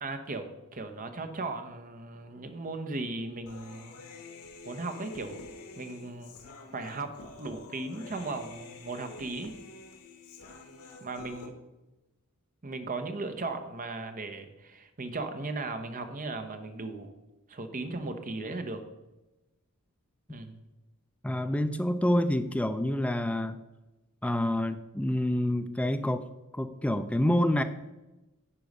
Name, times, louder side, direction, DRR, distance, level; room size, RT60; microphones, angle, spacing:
voice 1, 0.0-4.1 4.6-5.4 5.8-6.4 6.7-9.6 11.0-11.5 12.6-17.1 17.5-18.8 20.3-20.6, right 3 dB, 40° right, 7 dB, 0.8 m, -37 dB
Human voice, 3.4-11.5, left 3 dB, 85° left, 1.4 m, -48 dB
voice 2, 21.2-23.6 24.2-26.2 26.5-27.6, left 1 dB, 5° left, 9 dB, 0.3 m, -27 dB
9.9 x 4.7 x 5.3 m, 1.0 s
head